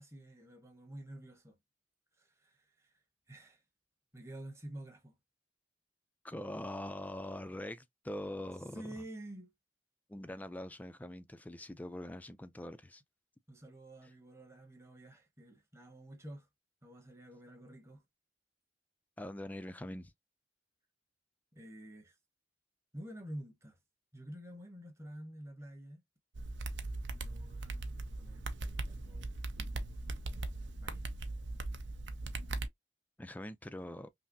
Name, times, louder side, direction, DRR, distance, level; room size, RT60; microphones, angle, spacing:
voice 1, 0.0-1.6 2.2-3.0 3.3-3.6 4.1-5.2 8.7-9.5 13.5-16.5 16.8-18.0 21.5-22.2 22.9-23.8 24.1-26.0 27.1-29.3 30.3-30.5 30.8-31.1, right 1 dB, 15° right, 1.0 m, -49 dB
voice 2, 6.2-9.0 10.1-13.0 19.2-20.1 33.2-34.1, left 1 dB, 10° left, 0.4 m, -43 dB
sound 1, 26.3-32.7, right 2 dB, 75° right, 0.7 m, -39 dB
5.6 x 2.0 x 2.6 m
head